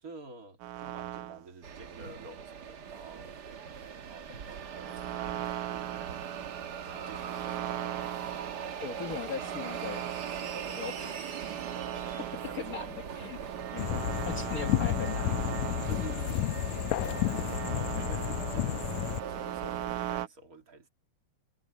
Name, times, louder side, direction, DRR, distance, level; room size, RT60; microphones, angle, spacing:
voice 1, 0.0-3.4 4.1-5.4 5.7-6.0 6.8-7.6 12.1-13.3 15.8-16.4 17.1-20.9, right 3 dB, 30° right, 2.6 m, -49 dB
sound 1, 0.6-1.5 4.5-20.3, right 14 dB, 85° right, 2.4 m, -39 dB
sound 2, 1.6-20.2, right 6 dB, 60° right, 1.1 m, -41 dB
voice 2, 8.8-10.1 10.7-11.3 11.9-12.3 12.5-15.4, left 6 dB, 65° left, 0.9 m, -40 dB
sound 3, 13.8-19.2, left 15 dB, 80° left, 1.9 m, -31 dB
omnidirectional pair, 3.5 m